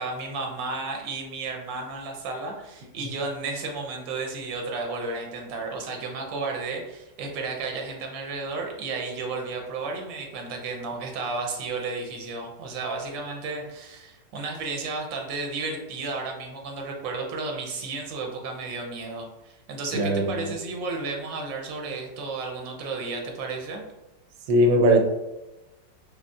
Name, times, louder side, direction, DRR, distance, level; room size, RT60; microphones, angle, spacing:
voice 1, 0.0-23.8, right 3 dB, 90° right, 1 dB, 1.4 m, -33 dB
voice 2, 19.9-20.5 24.5-25.0, right 1 dB, 70° right, 3 dB, 0.9 m, -20 dB
5.1 x 2.1 x 2.3 m, 1.0 s
omnidirectional pair, 2.0 m